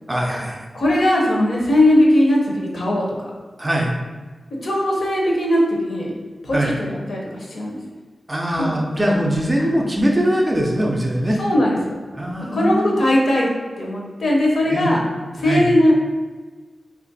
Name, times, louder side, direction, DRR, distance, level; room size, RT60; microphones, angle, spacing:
voice 1, 0.1-0.7 3.6-4.0 6.5-6.7 8.3-11.4 12.1-12.9 14.7-15.0 15.4-15.7, equal, 15° right, -1 dB, 0.4 m, -21 dB
voice 2, 0.7-3.3 4.6-6.1 6.4-7.8 8.5-8.7 9.0-9.1 9.6-9.7 11.4-12.0 12.4-13.5 13.8-15.0 15.4-15.9, left 1 dB, 65° left, -3 dB, 0.8 m, -19 dB
3.0 x 2.5 x 4.0 m, 1.3 s
wide cardioid pair, 140°, 0 cm